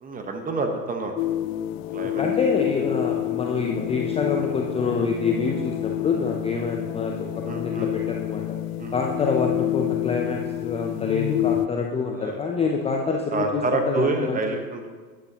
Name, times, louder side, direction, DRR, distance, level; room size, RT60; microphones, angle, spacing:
voice 1, 0.0-1.1 1.9-2.2 7.5-7.9 8.8-8.9 12.1-12.4 13.3-14.9, right 3 dB, 15° right, 4 dB, 1.1 m, -27 dB
sound 1, 1.2-11.7, left 14 dB, 55° left, 0.5 m, -28 dB
voice 2, 2.0-8.6 8.9-14.6, left 4 dB, 15° left, 1 dB, 0.6 m, -26 dB
11.5 x 9.7 x 2.9 m, 1.4 s
hypercardioid pair, 105°, 48 cm